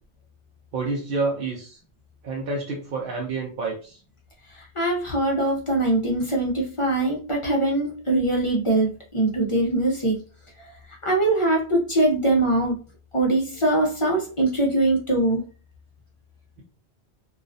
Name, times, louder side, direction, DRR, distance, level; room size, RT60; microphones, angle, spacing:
voice 1, 0.7-1.8 2.2-4.0, right 3 dB, 60° right, -2 dB, 0.7 m, -28 dB
voice 2, 4.5-10.2 11.0-12.8 13.1-15.4, right 2 dB, 40° left, -1 dB, 0.5 m, -22 dB
2.3 x 2.1 x 2.5 m, 0.38 s
omnidirectional pair, 1.2 m